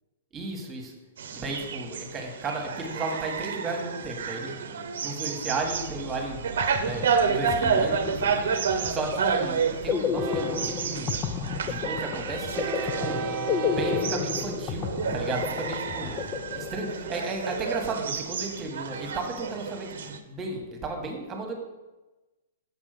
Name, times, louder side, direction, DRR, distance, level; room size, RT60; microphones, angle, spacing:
voice 1, 0.3-0.9 1.3-4.5 5.0-6.4 6.8-11.1 11.6-13.2 13.5-16.2 16.5-21.5, right 2 dB, 15° right, 2 dB, 1.5 m, -34 dB
sound 1, 1.2-20.2, right 6 dB, 75° right, 0.8 m, -30 dB
Train, 5.6-18.6, right 5 dB, 35° right, 0.7 m, -39 dB
sound 2, 6.3-6.4 6.6-17.2, left 7 dB, 25° left, 0.4 m, -32 dB
7.1 x 5.4 x 6.7 m, 1.1 s
hypercardioid pair, 155°, 0 cm